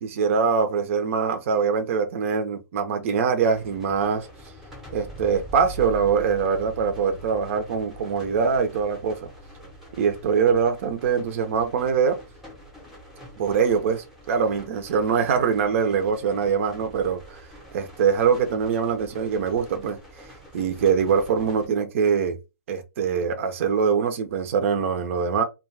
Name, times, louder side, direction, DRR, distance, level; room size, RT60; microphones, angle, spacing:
voice 1, 0.0-4.3 4.9-9.3 10.0-12.2 13.4-17.2 17.7-20.0 20.5-22.4 22.7-25.4, right 6 dB, 45° right, 0.6 m, -23 dB
sound 1, 3.4-21.7, right 1 dB, ahead, 0.7 m, -44 dB
2.3 x 2.2 x 3.2 m
hypercardioid pair, 150°, 10 cm